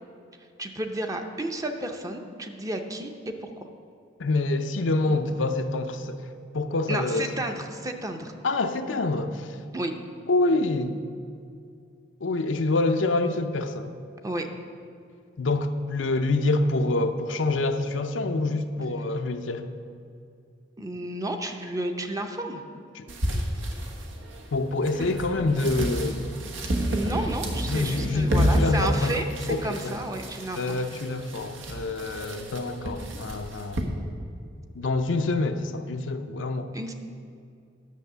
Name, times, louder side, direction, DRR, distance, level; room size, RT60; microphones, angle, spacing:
voice 1, 0.6-3.7 6.9-8.3 9.7-9.9 14.2-14.5 20.8-22.6 26.9-30.8 36.7-36.9, right 1 dB, 20° right, 5 dB, 0.7 m, -32 dB
voice 2, 4.2-6.3 6.5-7.3 8.4-9.6 10.3-11.0 12.2-13.9 15.4-19.7 22.9-23.1 24.5-26.3 27.0-27.4 27.7-30.0 30.6-33.8 34.7-36.7, left 2 dB, 80° left, 7 dB, 0.6 m, -26 dB
sound 1, 23.1-33.8, right 1 dB, 80° right, 1.3 m, -30 dB
10.5 x 6.4 x 6.8 m, 2.5 s
head